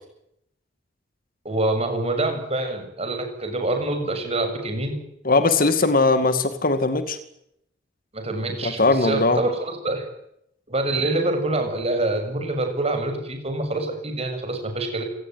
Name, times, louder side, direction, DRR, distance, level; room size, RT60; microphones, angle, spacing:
voice 1, 1.5-4.9 8.1-10.1 10.7-15.0, right 2 dB, 35° right, 5 dB, 7.1 m, -26 dB
voice 2, 5.2-7.2 8.6-9.4, left 3 dB, 50° left, 11 dB, 2.3 m, -20 dB
28.0 x 19.0 x 9.4 m, 0.78 s
head